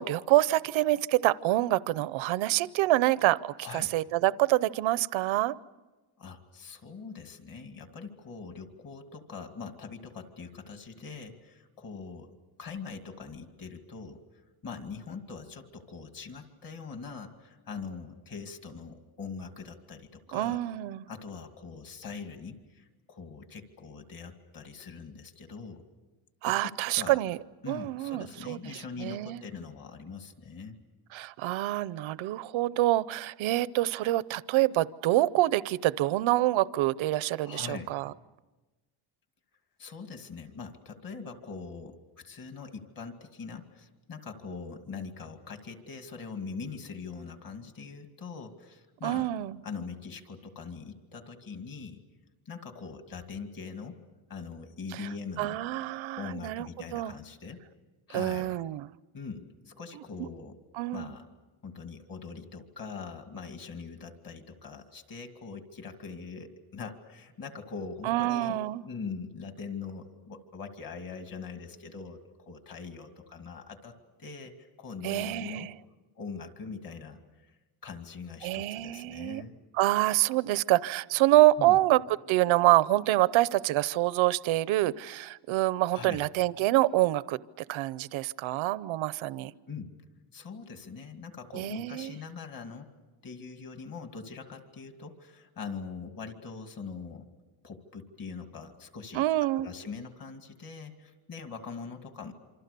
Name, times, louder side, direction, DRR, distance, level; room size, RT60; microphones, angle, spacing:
voice 1, 0.0-5.5 20.3-21.1 26.4-27.4 27.7-29.4 31.1-38.1 49.0-49.6 54.9-55.0 55.4-56.7 56.9-57.1 58.1-58.9 60.7-61.1 68.0-68.8 75.0-75.7 78.4-79.4 79.8-82.0 82.3-87.4 87.7-89.5 91.5-92.1 99.1-99.7, right 16 dB, 80° right, 18 dB, 0.7 m, -26 dB
voice 2, 3.6-4.0 6.2-12.3 12.6-14.2 14.6-20.6 21.1-25.8 26.5-27.2 27.6-30.8 37.4-37.9 39.8-49.3 49.6-52.0 52.5-54.0 54.3-55.6 56.2-57.6 58.1-58.5 59.1-60.6 60.9-61.2 61.6-75.7 76.2-77.5 77.8-79.6 81.6-81.8 85.9-86.3 89.7-90.0 90.3-92.9 93.2-97.3 97.6-99.3 99.5-102.3, left 5 dB, 45° left, 6 dB, 2.4 m, -42 dB
27.0 x 26.0 x 6.8 m, 1.2 s
cardioid pair, 170°, 46 cm